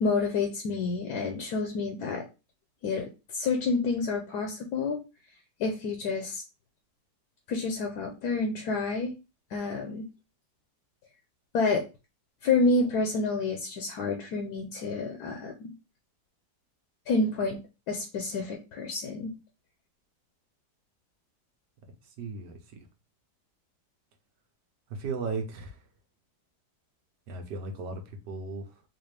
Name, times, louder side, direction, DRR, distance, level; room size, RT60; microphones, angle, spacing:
voice 1, 0.0-2.2 2.8-5.0 5.6-6.4 7.5-9.1 9.5-10.1 11.5-11.8 12.4-15.7 17.1-17.6 17.9-19.3, left 3 dB, 75° left, 4 dB, 1.1 m, -29 dB
voice 2, 22.0-22.8 24.9-25.9 27.3-28.8, right 4 dB, 90° right, 5 dB, 1.5 m, -36 dB
4.0 x 2.5 x 3.3 m, 0.29 s
omnidirectional pair, 1.8 m